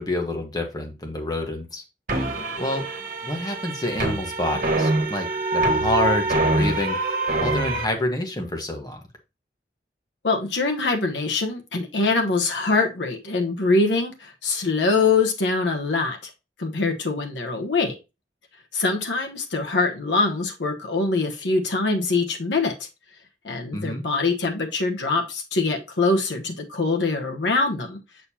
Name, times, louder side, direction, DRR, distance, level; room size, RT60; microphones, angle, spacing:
voice 1, 0.0-1.8 2.6-2.8 3.2-7.0 7.4-9.0 23.7-24.0, left 1 dB, 20° left, 3 dB, 1.4 m, -28 dB
sound 1, 2.1-7.8, right 2 dB, 50° right, 1.6 m, -24 dB
voice 2, 10.2-16.3 16.6-18.0 18.7-22.7 23.4-28.0, left 3 dB, 90° left, 3 dB, 1.0 m, -23 dB
6.8 x 6.6 x 2.8 m, 0.26 s
head